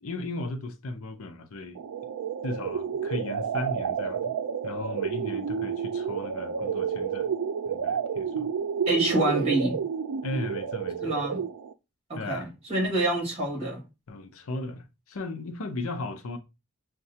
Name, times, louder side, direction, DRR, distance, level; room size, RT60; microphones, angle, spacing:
voice 1, 0.0-1.8 2.4-4.3 4.6-7.3 7.7-8.5 10.2-11.1 12.1-12.5 14.1-16.4, left 2 dB, 70° left, 0.6 m, -36 dB
sound 1, 1.8-11.7, right 7 dB, 90° right, 0.4 m, -30 dB
voice 2, 8.9-9.8 11.0-11.4 12.1-13.8, right 2 dB, 25° right, 1.9 m, -27 dB
6.3 x 2.2 x 2.7 m
head